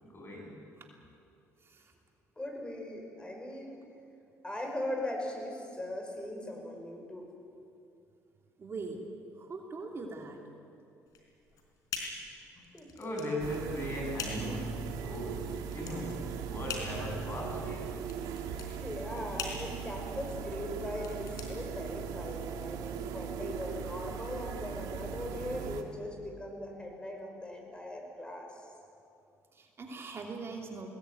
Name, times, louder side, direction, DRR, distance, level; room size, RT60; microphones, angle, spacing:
voice 1, 0.0-0.6 12.6-12.7 12.9-18.0, left 1 dB, 35° left, 0 dB, 7.8 m, -38 dB
voice 2, 2.4-3.8 4.4-7.3 12.7-12.9 18.7-28.7, left 1 dB, 15° left, 2 dB, 6.0 m, -39 dB
voice 3, 8.6-9.0 9.4-10.4 29.5-30.9, right 4 dB, 40° right, 1 dB, 3.0 m, -41 dB
sound 1, 11.1-22.4, left 6 dB, 75° left, 4.4 m, -44 dB
sound 2, 13.4-25.8, right 7 dB, 85° right, 1.8 m, -39 dB
20.0 x 19.5 x 9.4 m, 2.5 s
cardioid pair, 85°, 6 cm